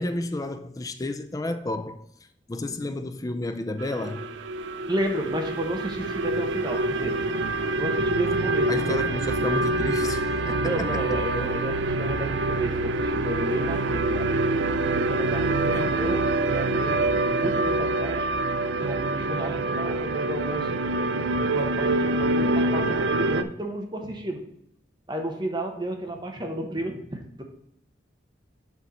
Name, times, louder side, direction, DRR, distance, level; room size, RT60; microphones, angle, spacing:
voice 1, 0.0-2.1 2.5-4.3 8.5-11.2 15.6-16.0, left 2 dB, 20° left, 0.4 m, -32 dB
sound 1, 3.8-23.4, right 2 dB, 75° right, 0.4 m, -26 dB
voice 2, 4.9-7.2 7.8-8.7 10.6-14.4 15.0-18.3 18.8-20.9 21.2-24.4 25.1-27.4, right 1 dB, 25° right, 0.9 m, -32 dB
sound 2, 8.2-17.8, left 1 dB, 45° left, 2.3 m, -42 dB
6.2 x 5.4 x 4.2 m
head